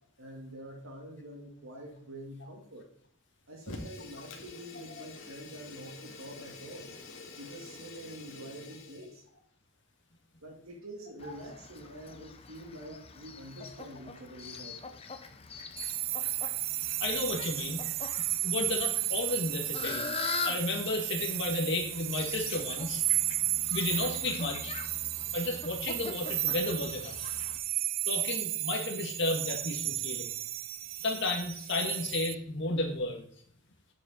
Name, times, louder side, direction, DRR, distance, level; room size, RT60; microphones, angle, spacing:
voice 1, 0.2-2.9 3.5-6.9 7.4-9.2 10.4-15.0, right 1 dB, 80° right, 1 dB, 2.5 m, -46 dB
Fire, 3.6-9.2, left 2 dB, 75° left, 2.1 m, -47 dB
Fowl, 11.2-27.6, left 4 dB, 30° left, 0.7 m, -43 dB
sound 1, 15.8-32.3, right 16 dB, 45° right, 0.3 m, -34 dB
voice 2, 17.0-17.8 18.2-20.1 20.4-23.0 23.7-24.7 25.3-27.3 28.1-30.3 31.0-33.3, left 2 dB, 55° left, 2 dB, 1.9 m, -33 dB
9.8 x 6.4 x 4.4 m, 0.63 s
head